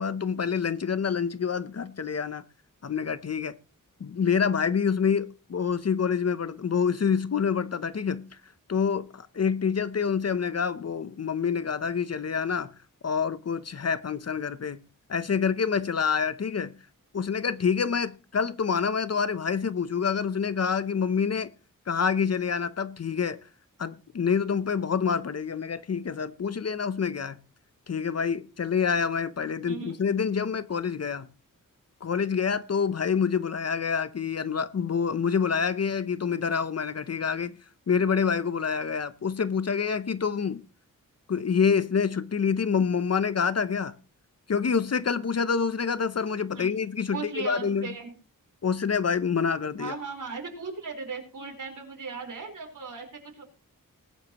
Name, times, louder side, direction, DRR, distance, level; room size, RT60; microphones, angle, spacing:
voice 1, 0.0-2.4 2.8-3.5 4.0-8.3 8.7-12.7 13.0-14.8 15.1-16.7 17.1-21.5 21.9-23.4 23.8-27.4 27.9-31.3 32.0-37.6 37.9-40.6 41.3-44.0 44.5-47.9 48.6-50.0, left 6 dB, 50° left, 0.7 m, -27 dB
voice 2, 29.6-30.0 46.5-46.7 47.1-48.1 49.8-53.1 53.3-53.4, right 4 dB, 65° right, 4.3 m, -37 dB
20.0 x 10.5 x 3.0 m
wide cardioid pair, 140°, 34 cm